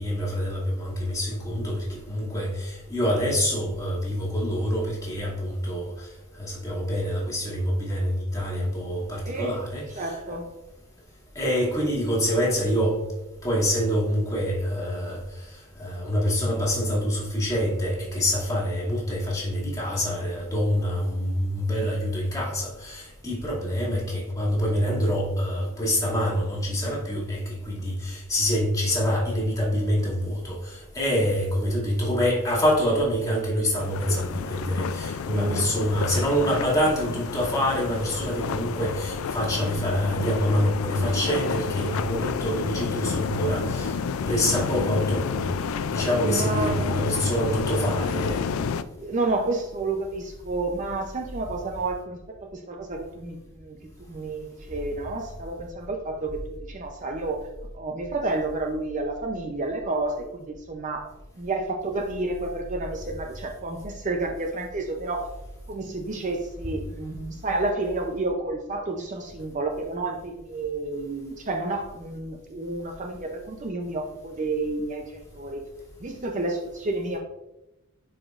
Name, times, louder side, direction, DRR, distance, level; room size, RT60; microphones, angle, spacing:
voice 1, 0.0-6.1 6.4-10.4 11.3-13.0 13.4-15.2 15.8-44.0 44.3-45.5 45.9-48.4, equal, 15° left, 2.4 m, -26 dB
voice 2, 9.2-9.6 9.9-10.4 23.8-23.9 35.3-35.7 46.2-47.0 49.0-53.8 54.1-57.5 57.7-61.1 61.4-65.3 65.7-75.6 76.0-77.2, right 2 dB, 35° right, 0.6 m, -30 dB
sound 1, 33.8-48.8, left 6 dB, 65° left, 0.4 m, -30 dB
11.5 x 5.0 x 2.5 m
head